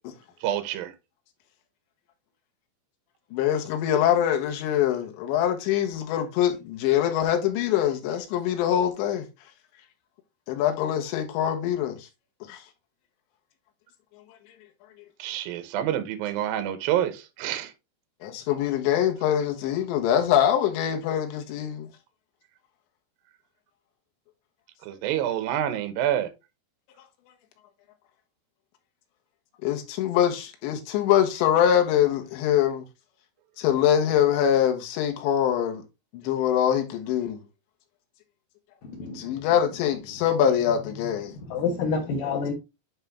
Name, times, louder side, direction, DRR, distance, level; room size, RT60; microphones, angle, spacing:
voice 1, 0.4-0.9 15.2-17.7 24.9-26.3, right 11 dB, 85° right, 2.0 m, -27 dB
voice 2, 3.3-9.2 10.5-12.0 12.5-12.6 18.2-21.9 29.6-32.8 33.6-35.8 36.1-37.4 39.2-41.3, left 10 dB, 80° left, 3.3 m, -24 dB
voice 3, 38.8-39.5 41.0-42.5, left 5 dB, 65° left, 2.5 m, -29 dB
8.9 x 3.5 x 3.4 m
omnidirectional pair, 5.2 m